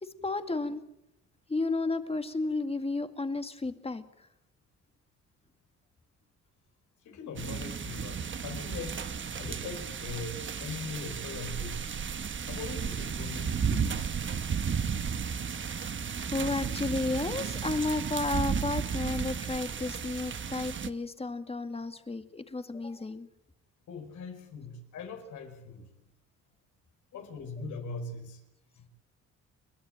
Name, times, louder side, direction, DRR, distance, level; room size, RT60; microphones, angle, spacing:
voice 1, 0.0-0.8 1.5-4.3 15.5-23.3, left 3 dB, 20° left, 9 dB, 2.0 m, -33 dB
voice 2, 7.0-9.0 9.4-12.1 12.5-14.3 23.9-25.9 27.1-28.4 28.8-28.9, left 4 dB, 75° left, 5 dB, 5.0 m, -41 dB
sound 1, 7.4-20.9, right 6 dB, 40° right, 1.3 m, -34 dB
30.0 x 12.0 x 8.9 m, 0.88 s
cardioid pair, 90°, 30 cm